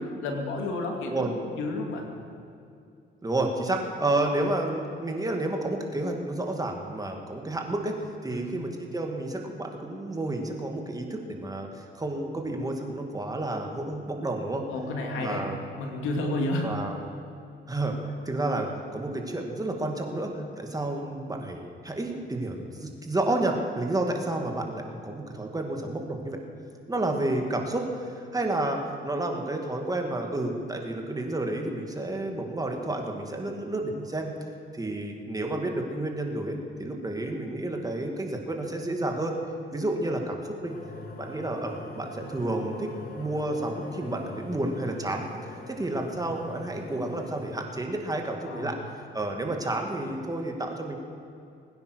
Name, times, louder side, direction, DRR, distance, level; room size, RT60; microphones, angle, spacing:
voice 1, 0.0-2.1 8.3-8.5 14.7-15.5 15.8-16.8 48.4-48.8, left 2 dB, 90° left, 2 dB, 2.5 m, -31 dB
voice 2, 3.2-14.7 15.2-15.6 16.6-17.0 17.7-18.0 18.3-26.4 26.9-34.3 34.7-39.4 39.7-40.7 41.2-45.2 45.7-48.8 49.1-51.0, right 2 dB, 20° right, 2 dB, 2.3 m, -30 dB
sound 1, 40.7-47.7, left 2 dB, 50° left, 2.7 m, -42 dB
21.0 x 9.7 x 6.4 m, 2.5 s
cardioid pair, 90°, 20 cm